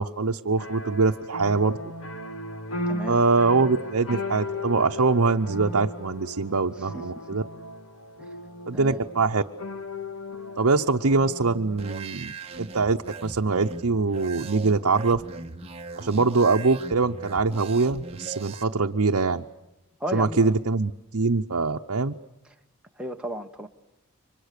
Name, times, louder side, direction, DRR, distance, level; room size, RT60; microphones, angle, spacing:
voice 1, 0.0-1.7 3.1-7.4 8.7-9.4 10.6-15.2 16.0-19.4 20.1-22.1, right 4 dB, 75° right, 2 dB, 0.8 m, -23 dB
sound 1, 0.6-11.8, left 1 dB, 75° left, 2.4 m, -36 dB
voice 2, 2.9-3.2 6.9-7.4 8.7-9.0 20.0-20.5 23.0-23.7, right 1 dB, 5° right, 2 dB, 1.2 m, -34 dB
sound 2, 11.8-18.6, right 3 dB, 25° right, 1.3 m, -40 dB
29.5 x 25.0 x 6.8 m, 0.96 s
head